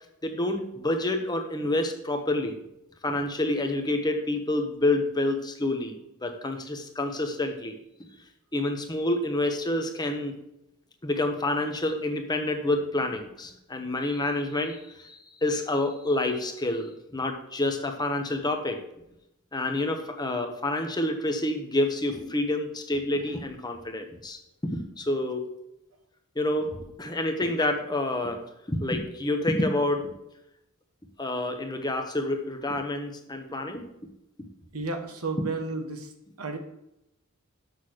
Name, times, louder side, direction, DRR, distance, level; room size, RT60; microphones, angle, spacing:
voice 1, 0.2-2.6 3.0-5.9 6.2-7.8 8.5-10.3 11.0-18.8 19.5-25.5 26.3-30.1 31.2-33.9, left 1 dB, 20° left, 5 dB, 1.0 m, -28 dB
voice 2, 34.7-36.1 36.4-36.6, right 3 dB, 85° right, 5 dB, 1.3 m, -32 dB
6.6 x 5.7 x 6.3 m, 0.85 s
head